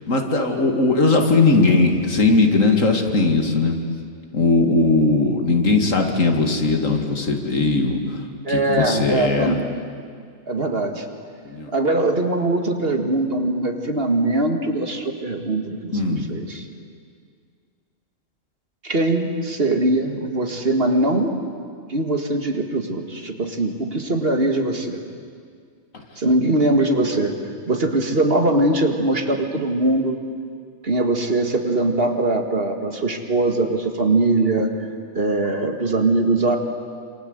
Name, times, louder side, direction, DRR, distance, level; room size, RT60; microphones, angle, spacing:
voice 1, 0.1-3.8 4.3-8.2 8.5-9.6 11.5-11.7 15.9-16.3 25.9-26.0, left 3 dB, 70° left, 3 dB, 2.7 m, -19 dB
voice 2, 8.4-9.7 10.5-11.0 11.7-16.7 18.8-21.3 21.9-25.0 26.2-27.3 27.7-30.2 30.8-34.7 35.1-36.6, right 2 dB, 45° right, 4 dB, 2.2 m, -21 dB
27.5 x 27.0 x 8.1 m, 2.1 s
omnidirectional pair, 1.4 m